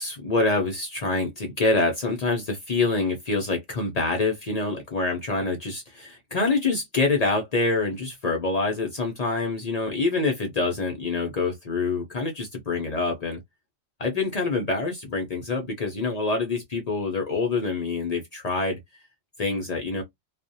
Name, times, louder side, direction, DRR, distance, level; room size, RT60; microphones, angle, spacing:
voice 1, 0.0-13.4 14.0-18.8 19.4-20.0, left 3 dB, 60° left, 0.4 m, -26 dB
2.4 x 2.0 x 2.6 m
omnidirectional pair, 1.4 m